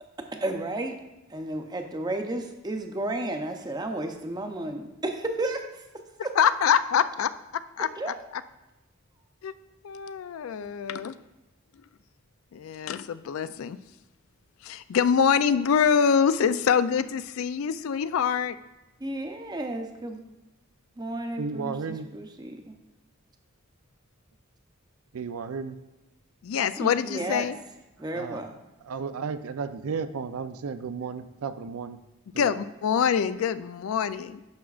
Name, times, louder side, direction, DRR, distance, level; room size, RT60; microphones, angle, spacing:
voice 1, 0.2-1.0 1.3-5.6 8.0-8.2 19.0-20.3 21.0-22.7 26.8-27.5 28.0-28.5, right 1 dB, 20° right, 5 dB, 0.6 m, -32 dB
voice 2, 6.4-7.3 7.8-8.1 9.4-9.5 9.8-11.1 12.5-13.8 14.6-18.6 26.4-27.6 32.4-34.4, left 7 dB, 70° left, 13 dB, 0.3 m, -25 dB
voice 3, 21.4-22.1 25.1-25.8 28.1-28.4 28.8-32.0 32.3-32.6, right 5 dB, 85° right, 11 dB, 0.4 m, -33 dB
10.5 x 6.2 x 2.4 m, 1.0 s
head